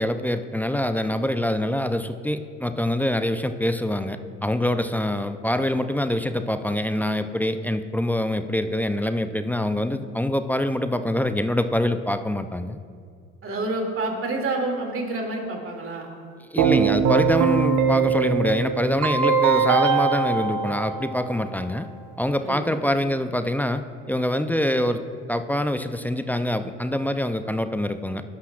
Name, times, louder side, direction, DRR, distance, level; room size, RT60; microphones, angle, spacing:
voice 1, 0.0-12.8 16.5-21.9 22.2-23.8 24.1-25.0 25.3-28.2, left 1 dB, 5° left, 10 dB, 0.5 m, -25 dB
voice 2, 13.4-16.1 22.4-22.8, right 2 dB, 35° right, 1 dB, 2.7 m, -28 dB
Keyboard (musical), 16.6-21.5, right 6 dB, 50° right, 1.1 m, -21 dB
19.0 x 11.5 x 2.5 m, 2.2 s
hypercardioid pair, 60°, 39 cm